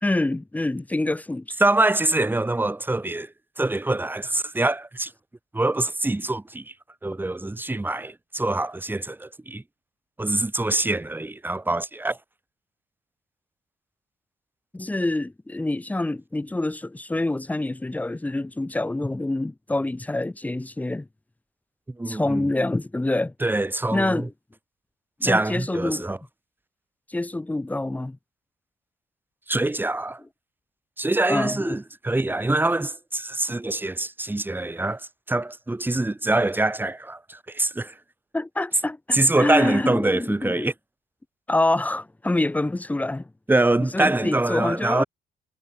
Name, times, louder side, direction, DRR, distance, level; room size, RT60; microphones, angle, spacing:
voice 1, 0.0-1.5 14.7-21.1 22.1-23.3 23.9-24.3 25.2-26.0 27.1-28.2 31.3-31.8 38.3-40.7 41.5-43.3 43.9-45.0, left 2 dB, 10° left, 0.4 m, -26 dB
voice 2, 1.6-3.3 3.6-5.1 5.5-6.7 7.0-9.6 10.2-12.2 22.0-22.4 23.4-24.3 25.2-26.2 29.5-30.2 31.0-37.9 39.1-40.7 43.5-45.0, right 2 dB, 10° right, 0.9 m, -24 dB
cardioid pair, 90°, 20 cm